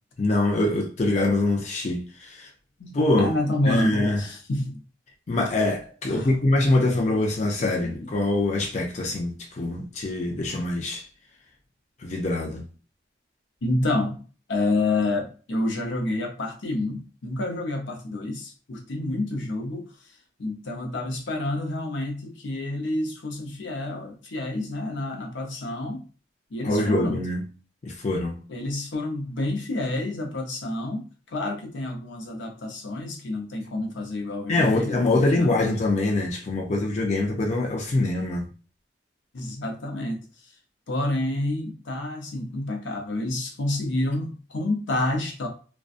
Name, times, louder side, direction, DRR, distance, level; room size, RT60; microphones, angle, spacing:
voice 1, 0.2-2.5 2.9-3.3 3.7-4.2 5.3-11.1 12.0-12.7 26.6-27.4 27.8-28.4 34.5-38.5, left 2 dB, 40° left, 0.4 m, -24 dB
voice 2, 3.2-4.8 6.1-6.4 7.6-8.0 13.6-14.2 14.5-19.9 20.4-26.0 26.5-27.2 28.5-35.7 39.3-40.2 40.9-45.5, left 2 dB, 85° left, 0.7 m, -28 dB
2.5 x 2.2 x 2.4 m
head